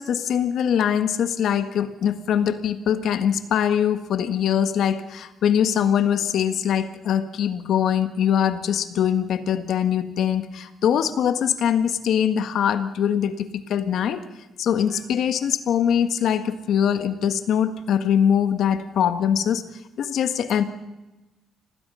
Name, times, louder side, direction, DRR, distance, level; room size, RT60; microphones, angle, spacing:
voice 1, 0.0-14.2 14.6-19.6 20.0-20.6, left 9 dB, 75° left, 9 dB, 1.6 m, -22 dB
26.0 x 18.0 x 5.7 m, 1.0 s
cardioid pair, 90°, 0 cm